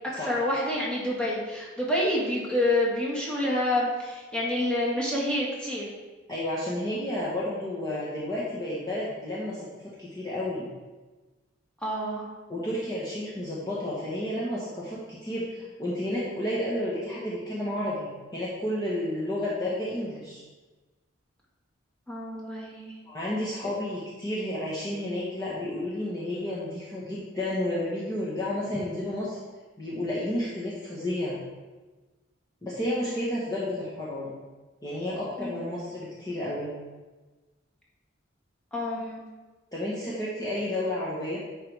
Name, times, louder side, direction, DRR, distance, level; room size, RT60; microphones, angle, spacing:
voice 1, 0.2-5.8 11.8-12.3 22.1-22.9 35.4-35.6 38.7-39.2, left 1 dB, 5° left, -6 dB, 1.7 m, -28 dB
voice 2, 6.3-9.7 10.0-10.7 12.5-20.4 23.0-29.4 29.8-31.4 32.6-34.3 34.8-36.7 39.7-41.4, left 1 dB, 20° left, -8 dB, 1.2 m, -31 dB
10.5 x 4.8 x 3.5 m, 1.2 s
head